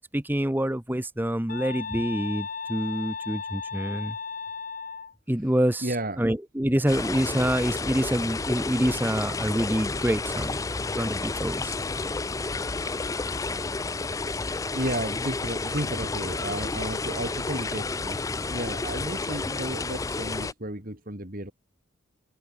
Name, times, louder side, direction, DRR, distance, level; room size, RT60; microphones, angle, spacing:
voice 1, 0.1-4.2 5.3-5.9 6.2-10.6 10.9-11.8, equal, 10° right, 1.0 m, -26 dB
sound 1, 1.5-5.1, left 5 dB, 40° left, 0.9 m, -35 dB
voice 2, 5.8-6.3 14.7-21.5, right 1 dB, 45° right, 3.7 m, -33 dB
sound 2, 6.9-20.5, left 3 dB, 15° left, 0.4 m, -31 dB
head